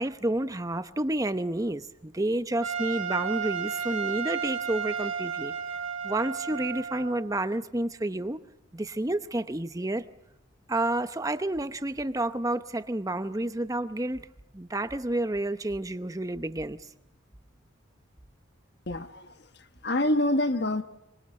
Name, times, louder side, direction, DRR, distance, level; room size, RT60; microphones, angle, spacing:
voice 1, 0.0-5.5 6.0-8.4 8.7-10.1 10.7-14.3 14.5-16.8, right 1 dB, 15° right, 0.8 m, -30 dB
Trumpet, 2.6-7.2, right 7 dB, 85° right, 2.9 m, -33 dB
voice 2, 18.9-19.3 19.8-20.8, left 1 dB, 55° left, 1.4 m, -26 dB
24.5 x 24.0 x 6.4 m
head